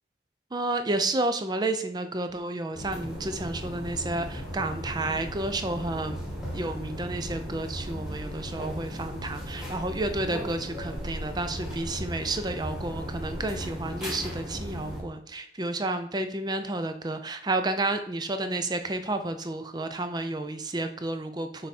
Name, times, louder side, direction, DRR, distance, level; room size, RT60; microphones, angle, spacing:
voice 1, 0.5-6.2 6.5-21.7, right 2 dB, 20° right, 8 dB, 0.5 m, -31 dB
sound 1, 2.7-15.0, equal, 5° right, 1.6 m, -36 dB
6.4 x 3.5 x 4.2 m, 0.70 s
head